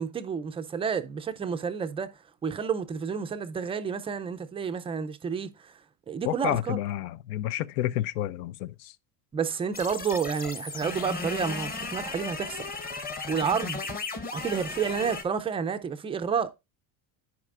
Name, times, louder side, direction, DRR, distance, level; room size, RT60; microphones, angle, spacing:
voice 1, 0.0-5.7 6.1-6.8 9.3-12.7 13.3-13.9 14.3-16.5, right 6 dB, 15° right, 0.3 m, -30 dB
voice 2, 6.2-8.9, left 13 dB, 80° left, 0.7 m, -30 dB
sound 1, 9.7-15.2, left 4 dB, 20° left, 0.9 m, -35 dB
13.0 x 4.8 x 2.4 m
cardioid pair, 140°, 46 cm